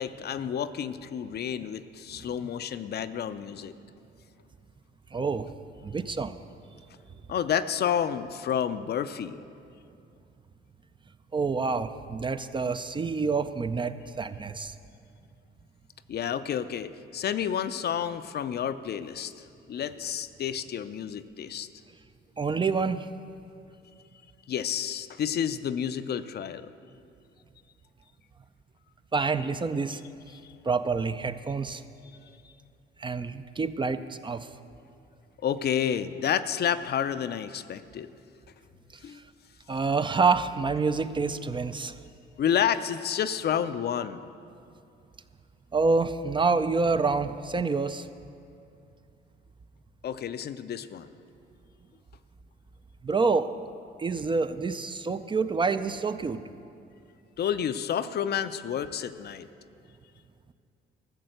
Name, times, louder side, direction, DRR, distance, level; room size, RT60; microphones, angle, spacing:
voice 1, 0.0-3.7 7.3-9.4 16.1-19.3 19.7-21.7 24.5-26.7 30.3-30.5 35.4-38.1 39.0-39.2 42.4-44.3 50.0-51.1 57.4-59.5, left 9 dB, 55° left, 12 dB, 0.5 m, -30 dB
voice 2, 5.1-5.5 5.8-6.4 11.3-14.7 22.4-23.1 29.1-30.0 30.6-31.8 33.0-34.5 39.1-39.2 39.7-42.0 45.7-48.1 53.0-53.5 54.0-56.4, right 4 dB, 25° right, 11 dB, 0.4 m, -27 dB
13.5 x 6.7 x 7.8 m, 2.5 s
cardioid pair, 90°, 20 cm